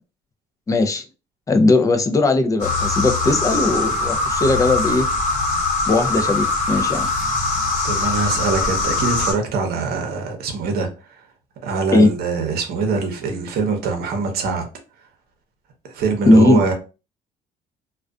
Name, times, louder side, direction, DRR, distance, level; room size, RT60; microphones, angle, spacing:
voice 1, 0.7-1.0 1.5-5.1 5.9-7.1 11.9-12.1 16.3-16.6, left 2 dB, 20° left, 0.4 m, -17 dB
sound 1, 2.6-9.3, left 3 dB, 40° left, 1.0 m, -22 dB
voice 2, 7.8-10.9 11.6-14.7 15.9-16.7, right 4 dB, 65° right, 0.8 m, -23 dB
2.4 x 2.2 x 2.3 m
cardioid pair, 110°, 17 cm